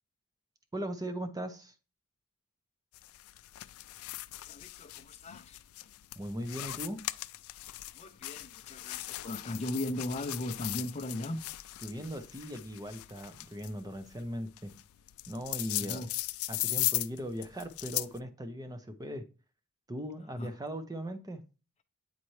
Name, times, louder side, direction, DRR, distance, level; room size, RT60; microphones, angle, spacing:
voice 1, 0.7-1.7 6.2-7.0 11.8-14.7 15.3-16.0 16.5-19.2 19.9-21.4, equal, 20° right, 0.7 m, -39 dB
sound 1, 2.9-18.2, left 18 dB, 90° left, 0.3 m, -38 dB
voice 2, 4.5-5.6 7.6-11.5 15.7-16.1 20.4-20.5, left 1 dB, 30° left, 0.5 m, -38 dB
8.9 x 4.1 x 3.2 m
head